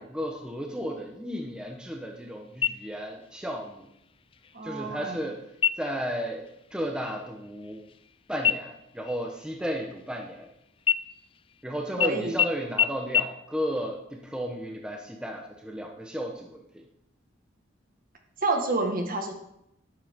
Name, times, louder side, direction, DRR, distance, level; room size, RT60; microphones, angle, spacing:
voice 1, 0.0-3.9 4.6-5.4 5.8-6.4 6.7-7.8 8.3-10.5 11.6-16.8, equal, 5° right, 1 dB, 1.0 m, -34 dB
sound 1, 2.6-3.3 3.7-3.8 4.3-4.8 5.5-6.1 6.5-6.7 7.0-8.1 8.4-10.4 10.8-11.6 12.0-12.1 12.4-12.5 12.8-12.9 13.1-13.2, left 8 dB, 30° left, 0.3 m, -28 dB
voice 2, 4.5-5.2 12.0-12.3 18.4-19.3, right 2 dB, 50° right, 3 dB, 1.7 m, -28 dB
12.0 x 10.5 x 3.7 m, 0.80 s
head